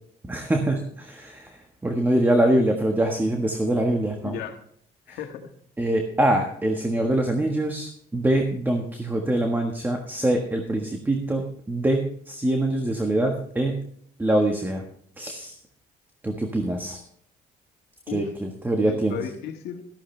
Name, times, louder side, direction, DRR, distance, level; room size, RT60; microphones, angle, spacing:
voice 1, 0.3-1.5 1.8-4.4 5.1-5.2 5.8-13.8 14.2-14.8 15.2-15.5 16.2-17.0 18.1-19.2, right 1 dB, 10° right, 3 dB, 1.5 m, -24 dB
voice 2, 4.2-4.6 5.1-5.5 18.1-18.3 18.8-19.8, left 9 dB, 80° left, 5 dB, 1.8 m, -35 dB
13.5 x 12.5 x 3.3 m, 0.65 s
cardioid pair, 110°, 17 cm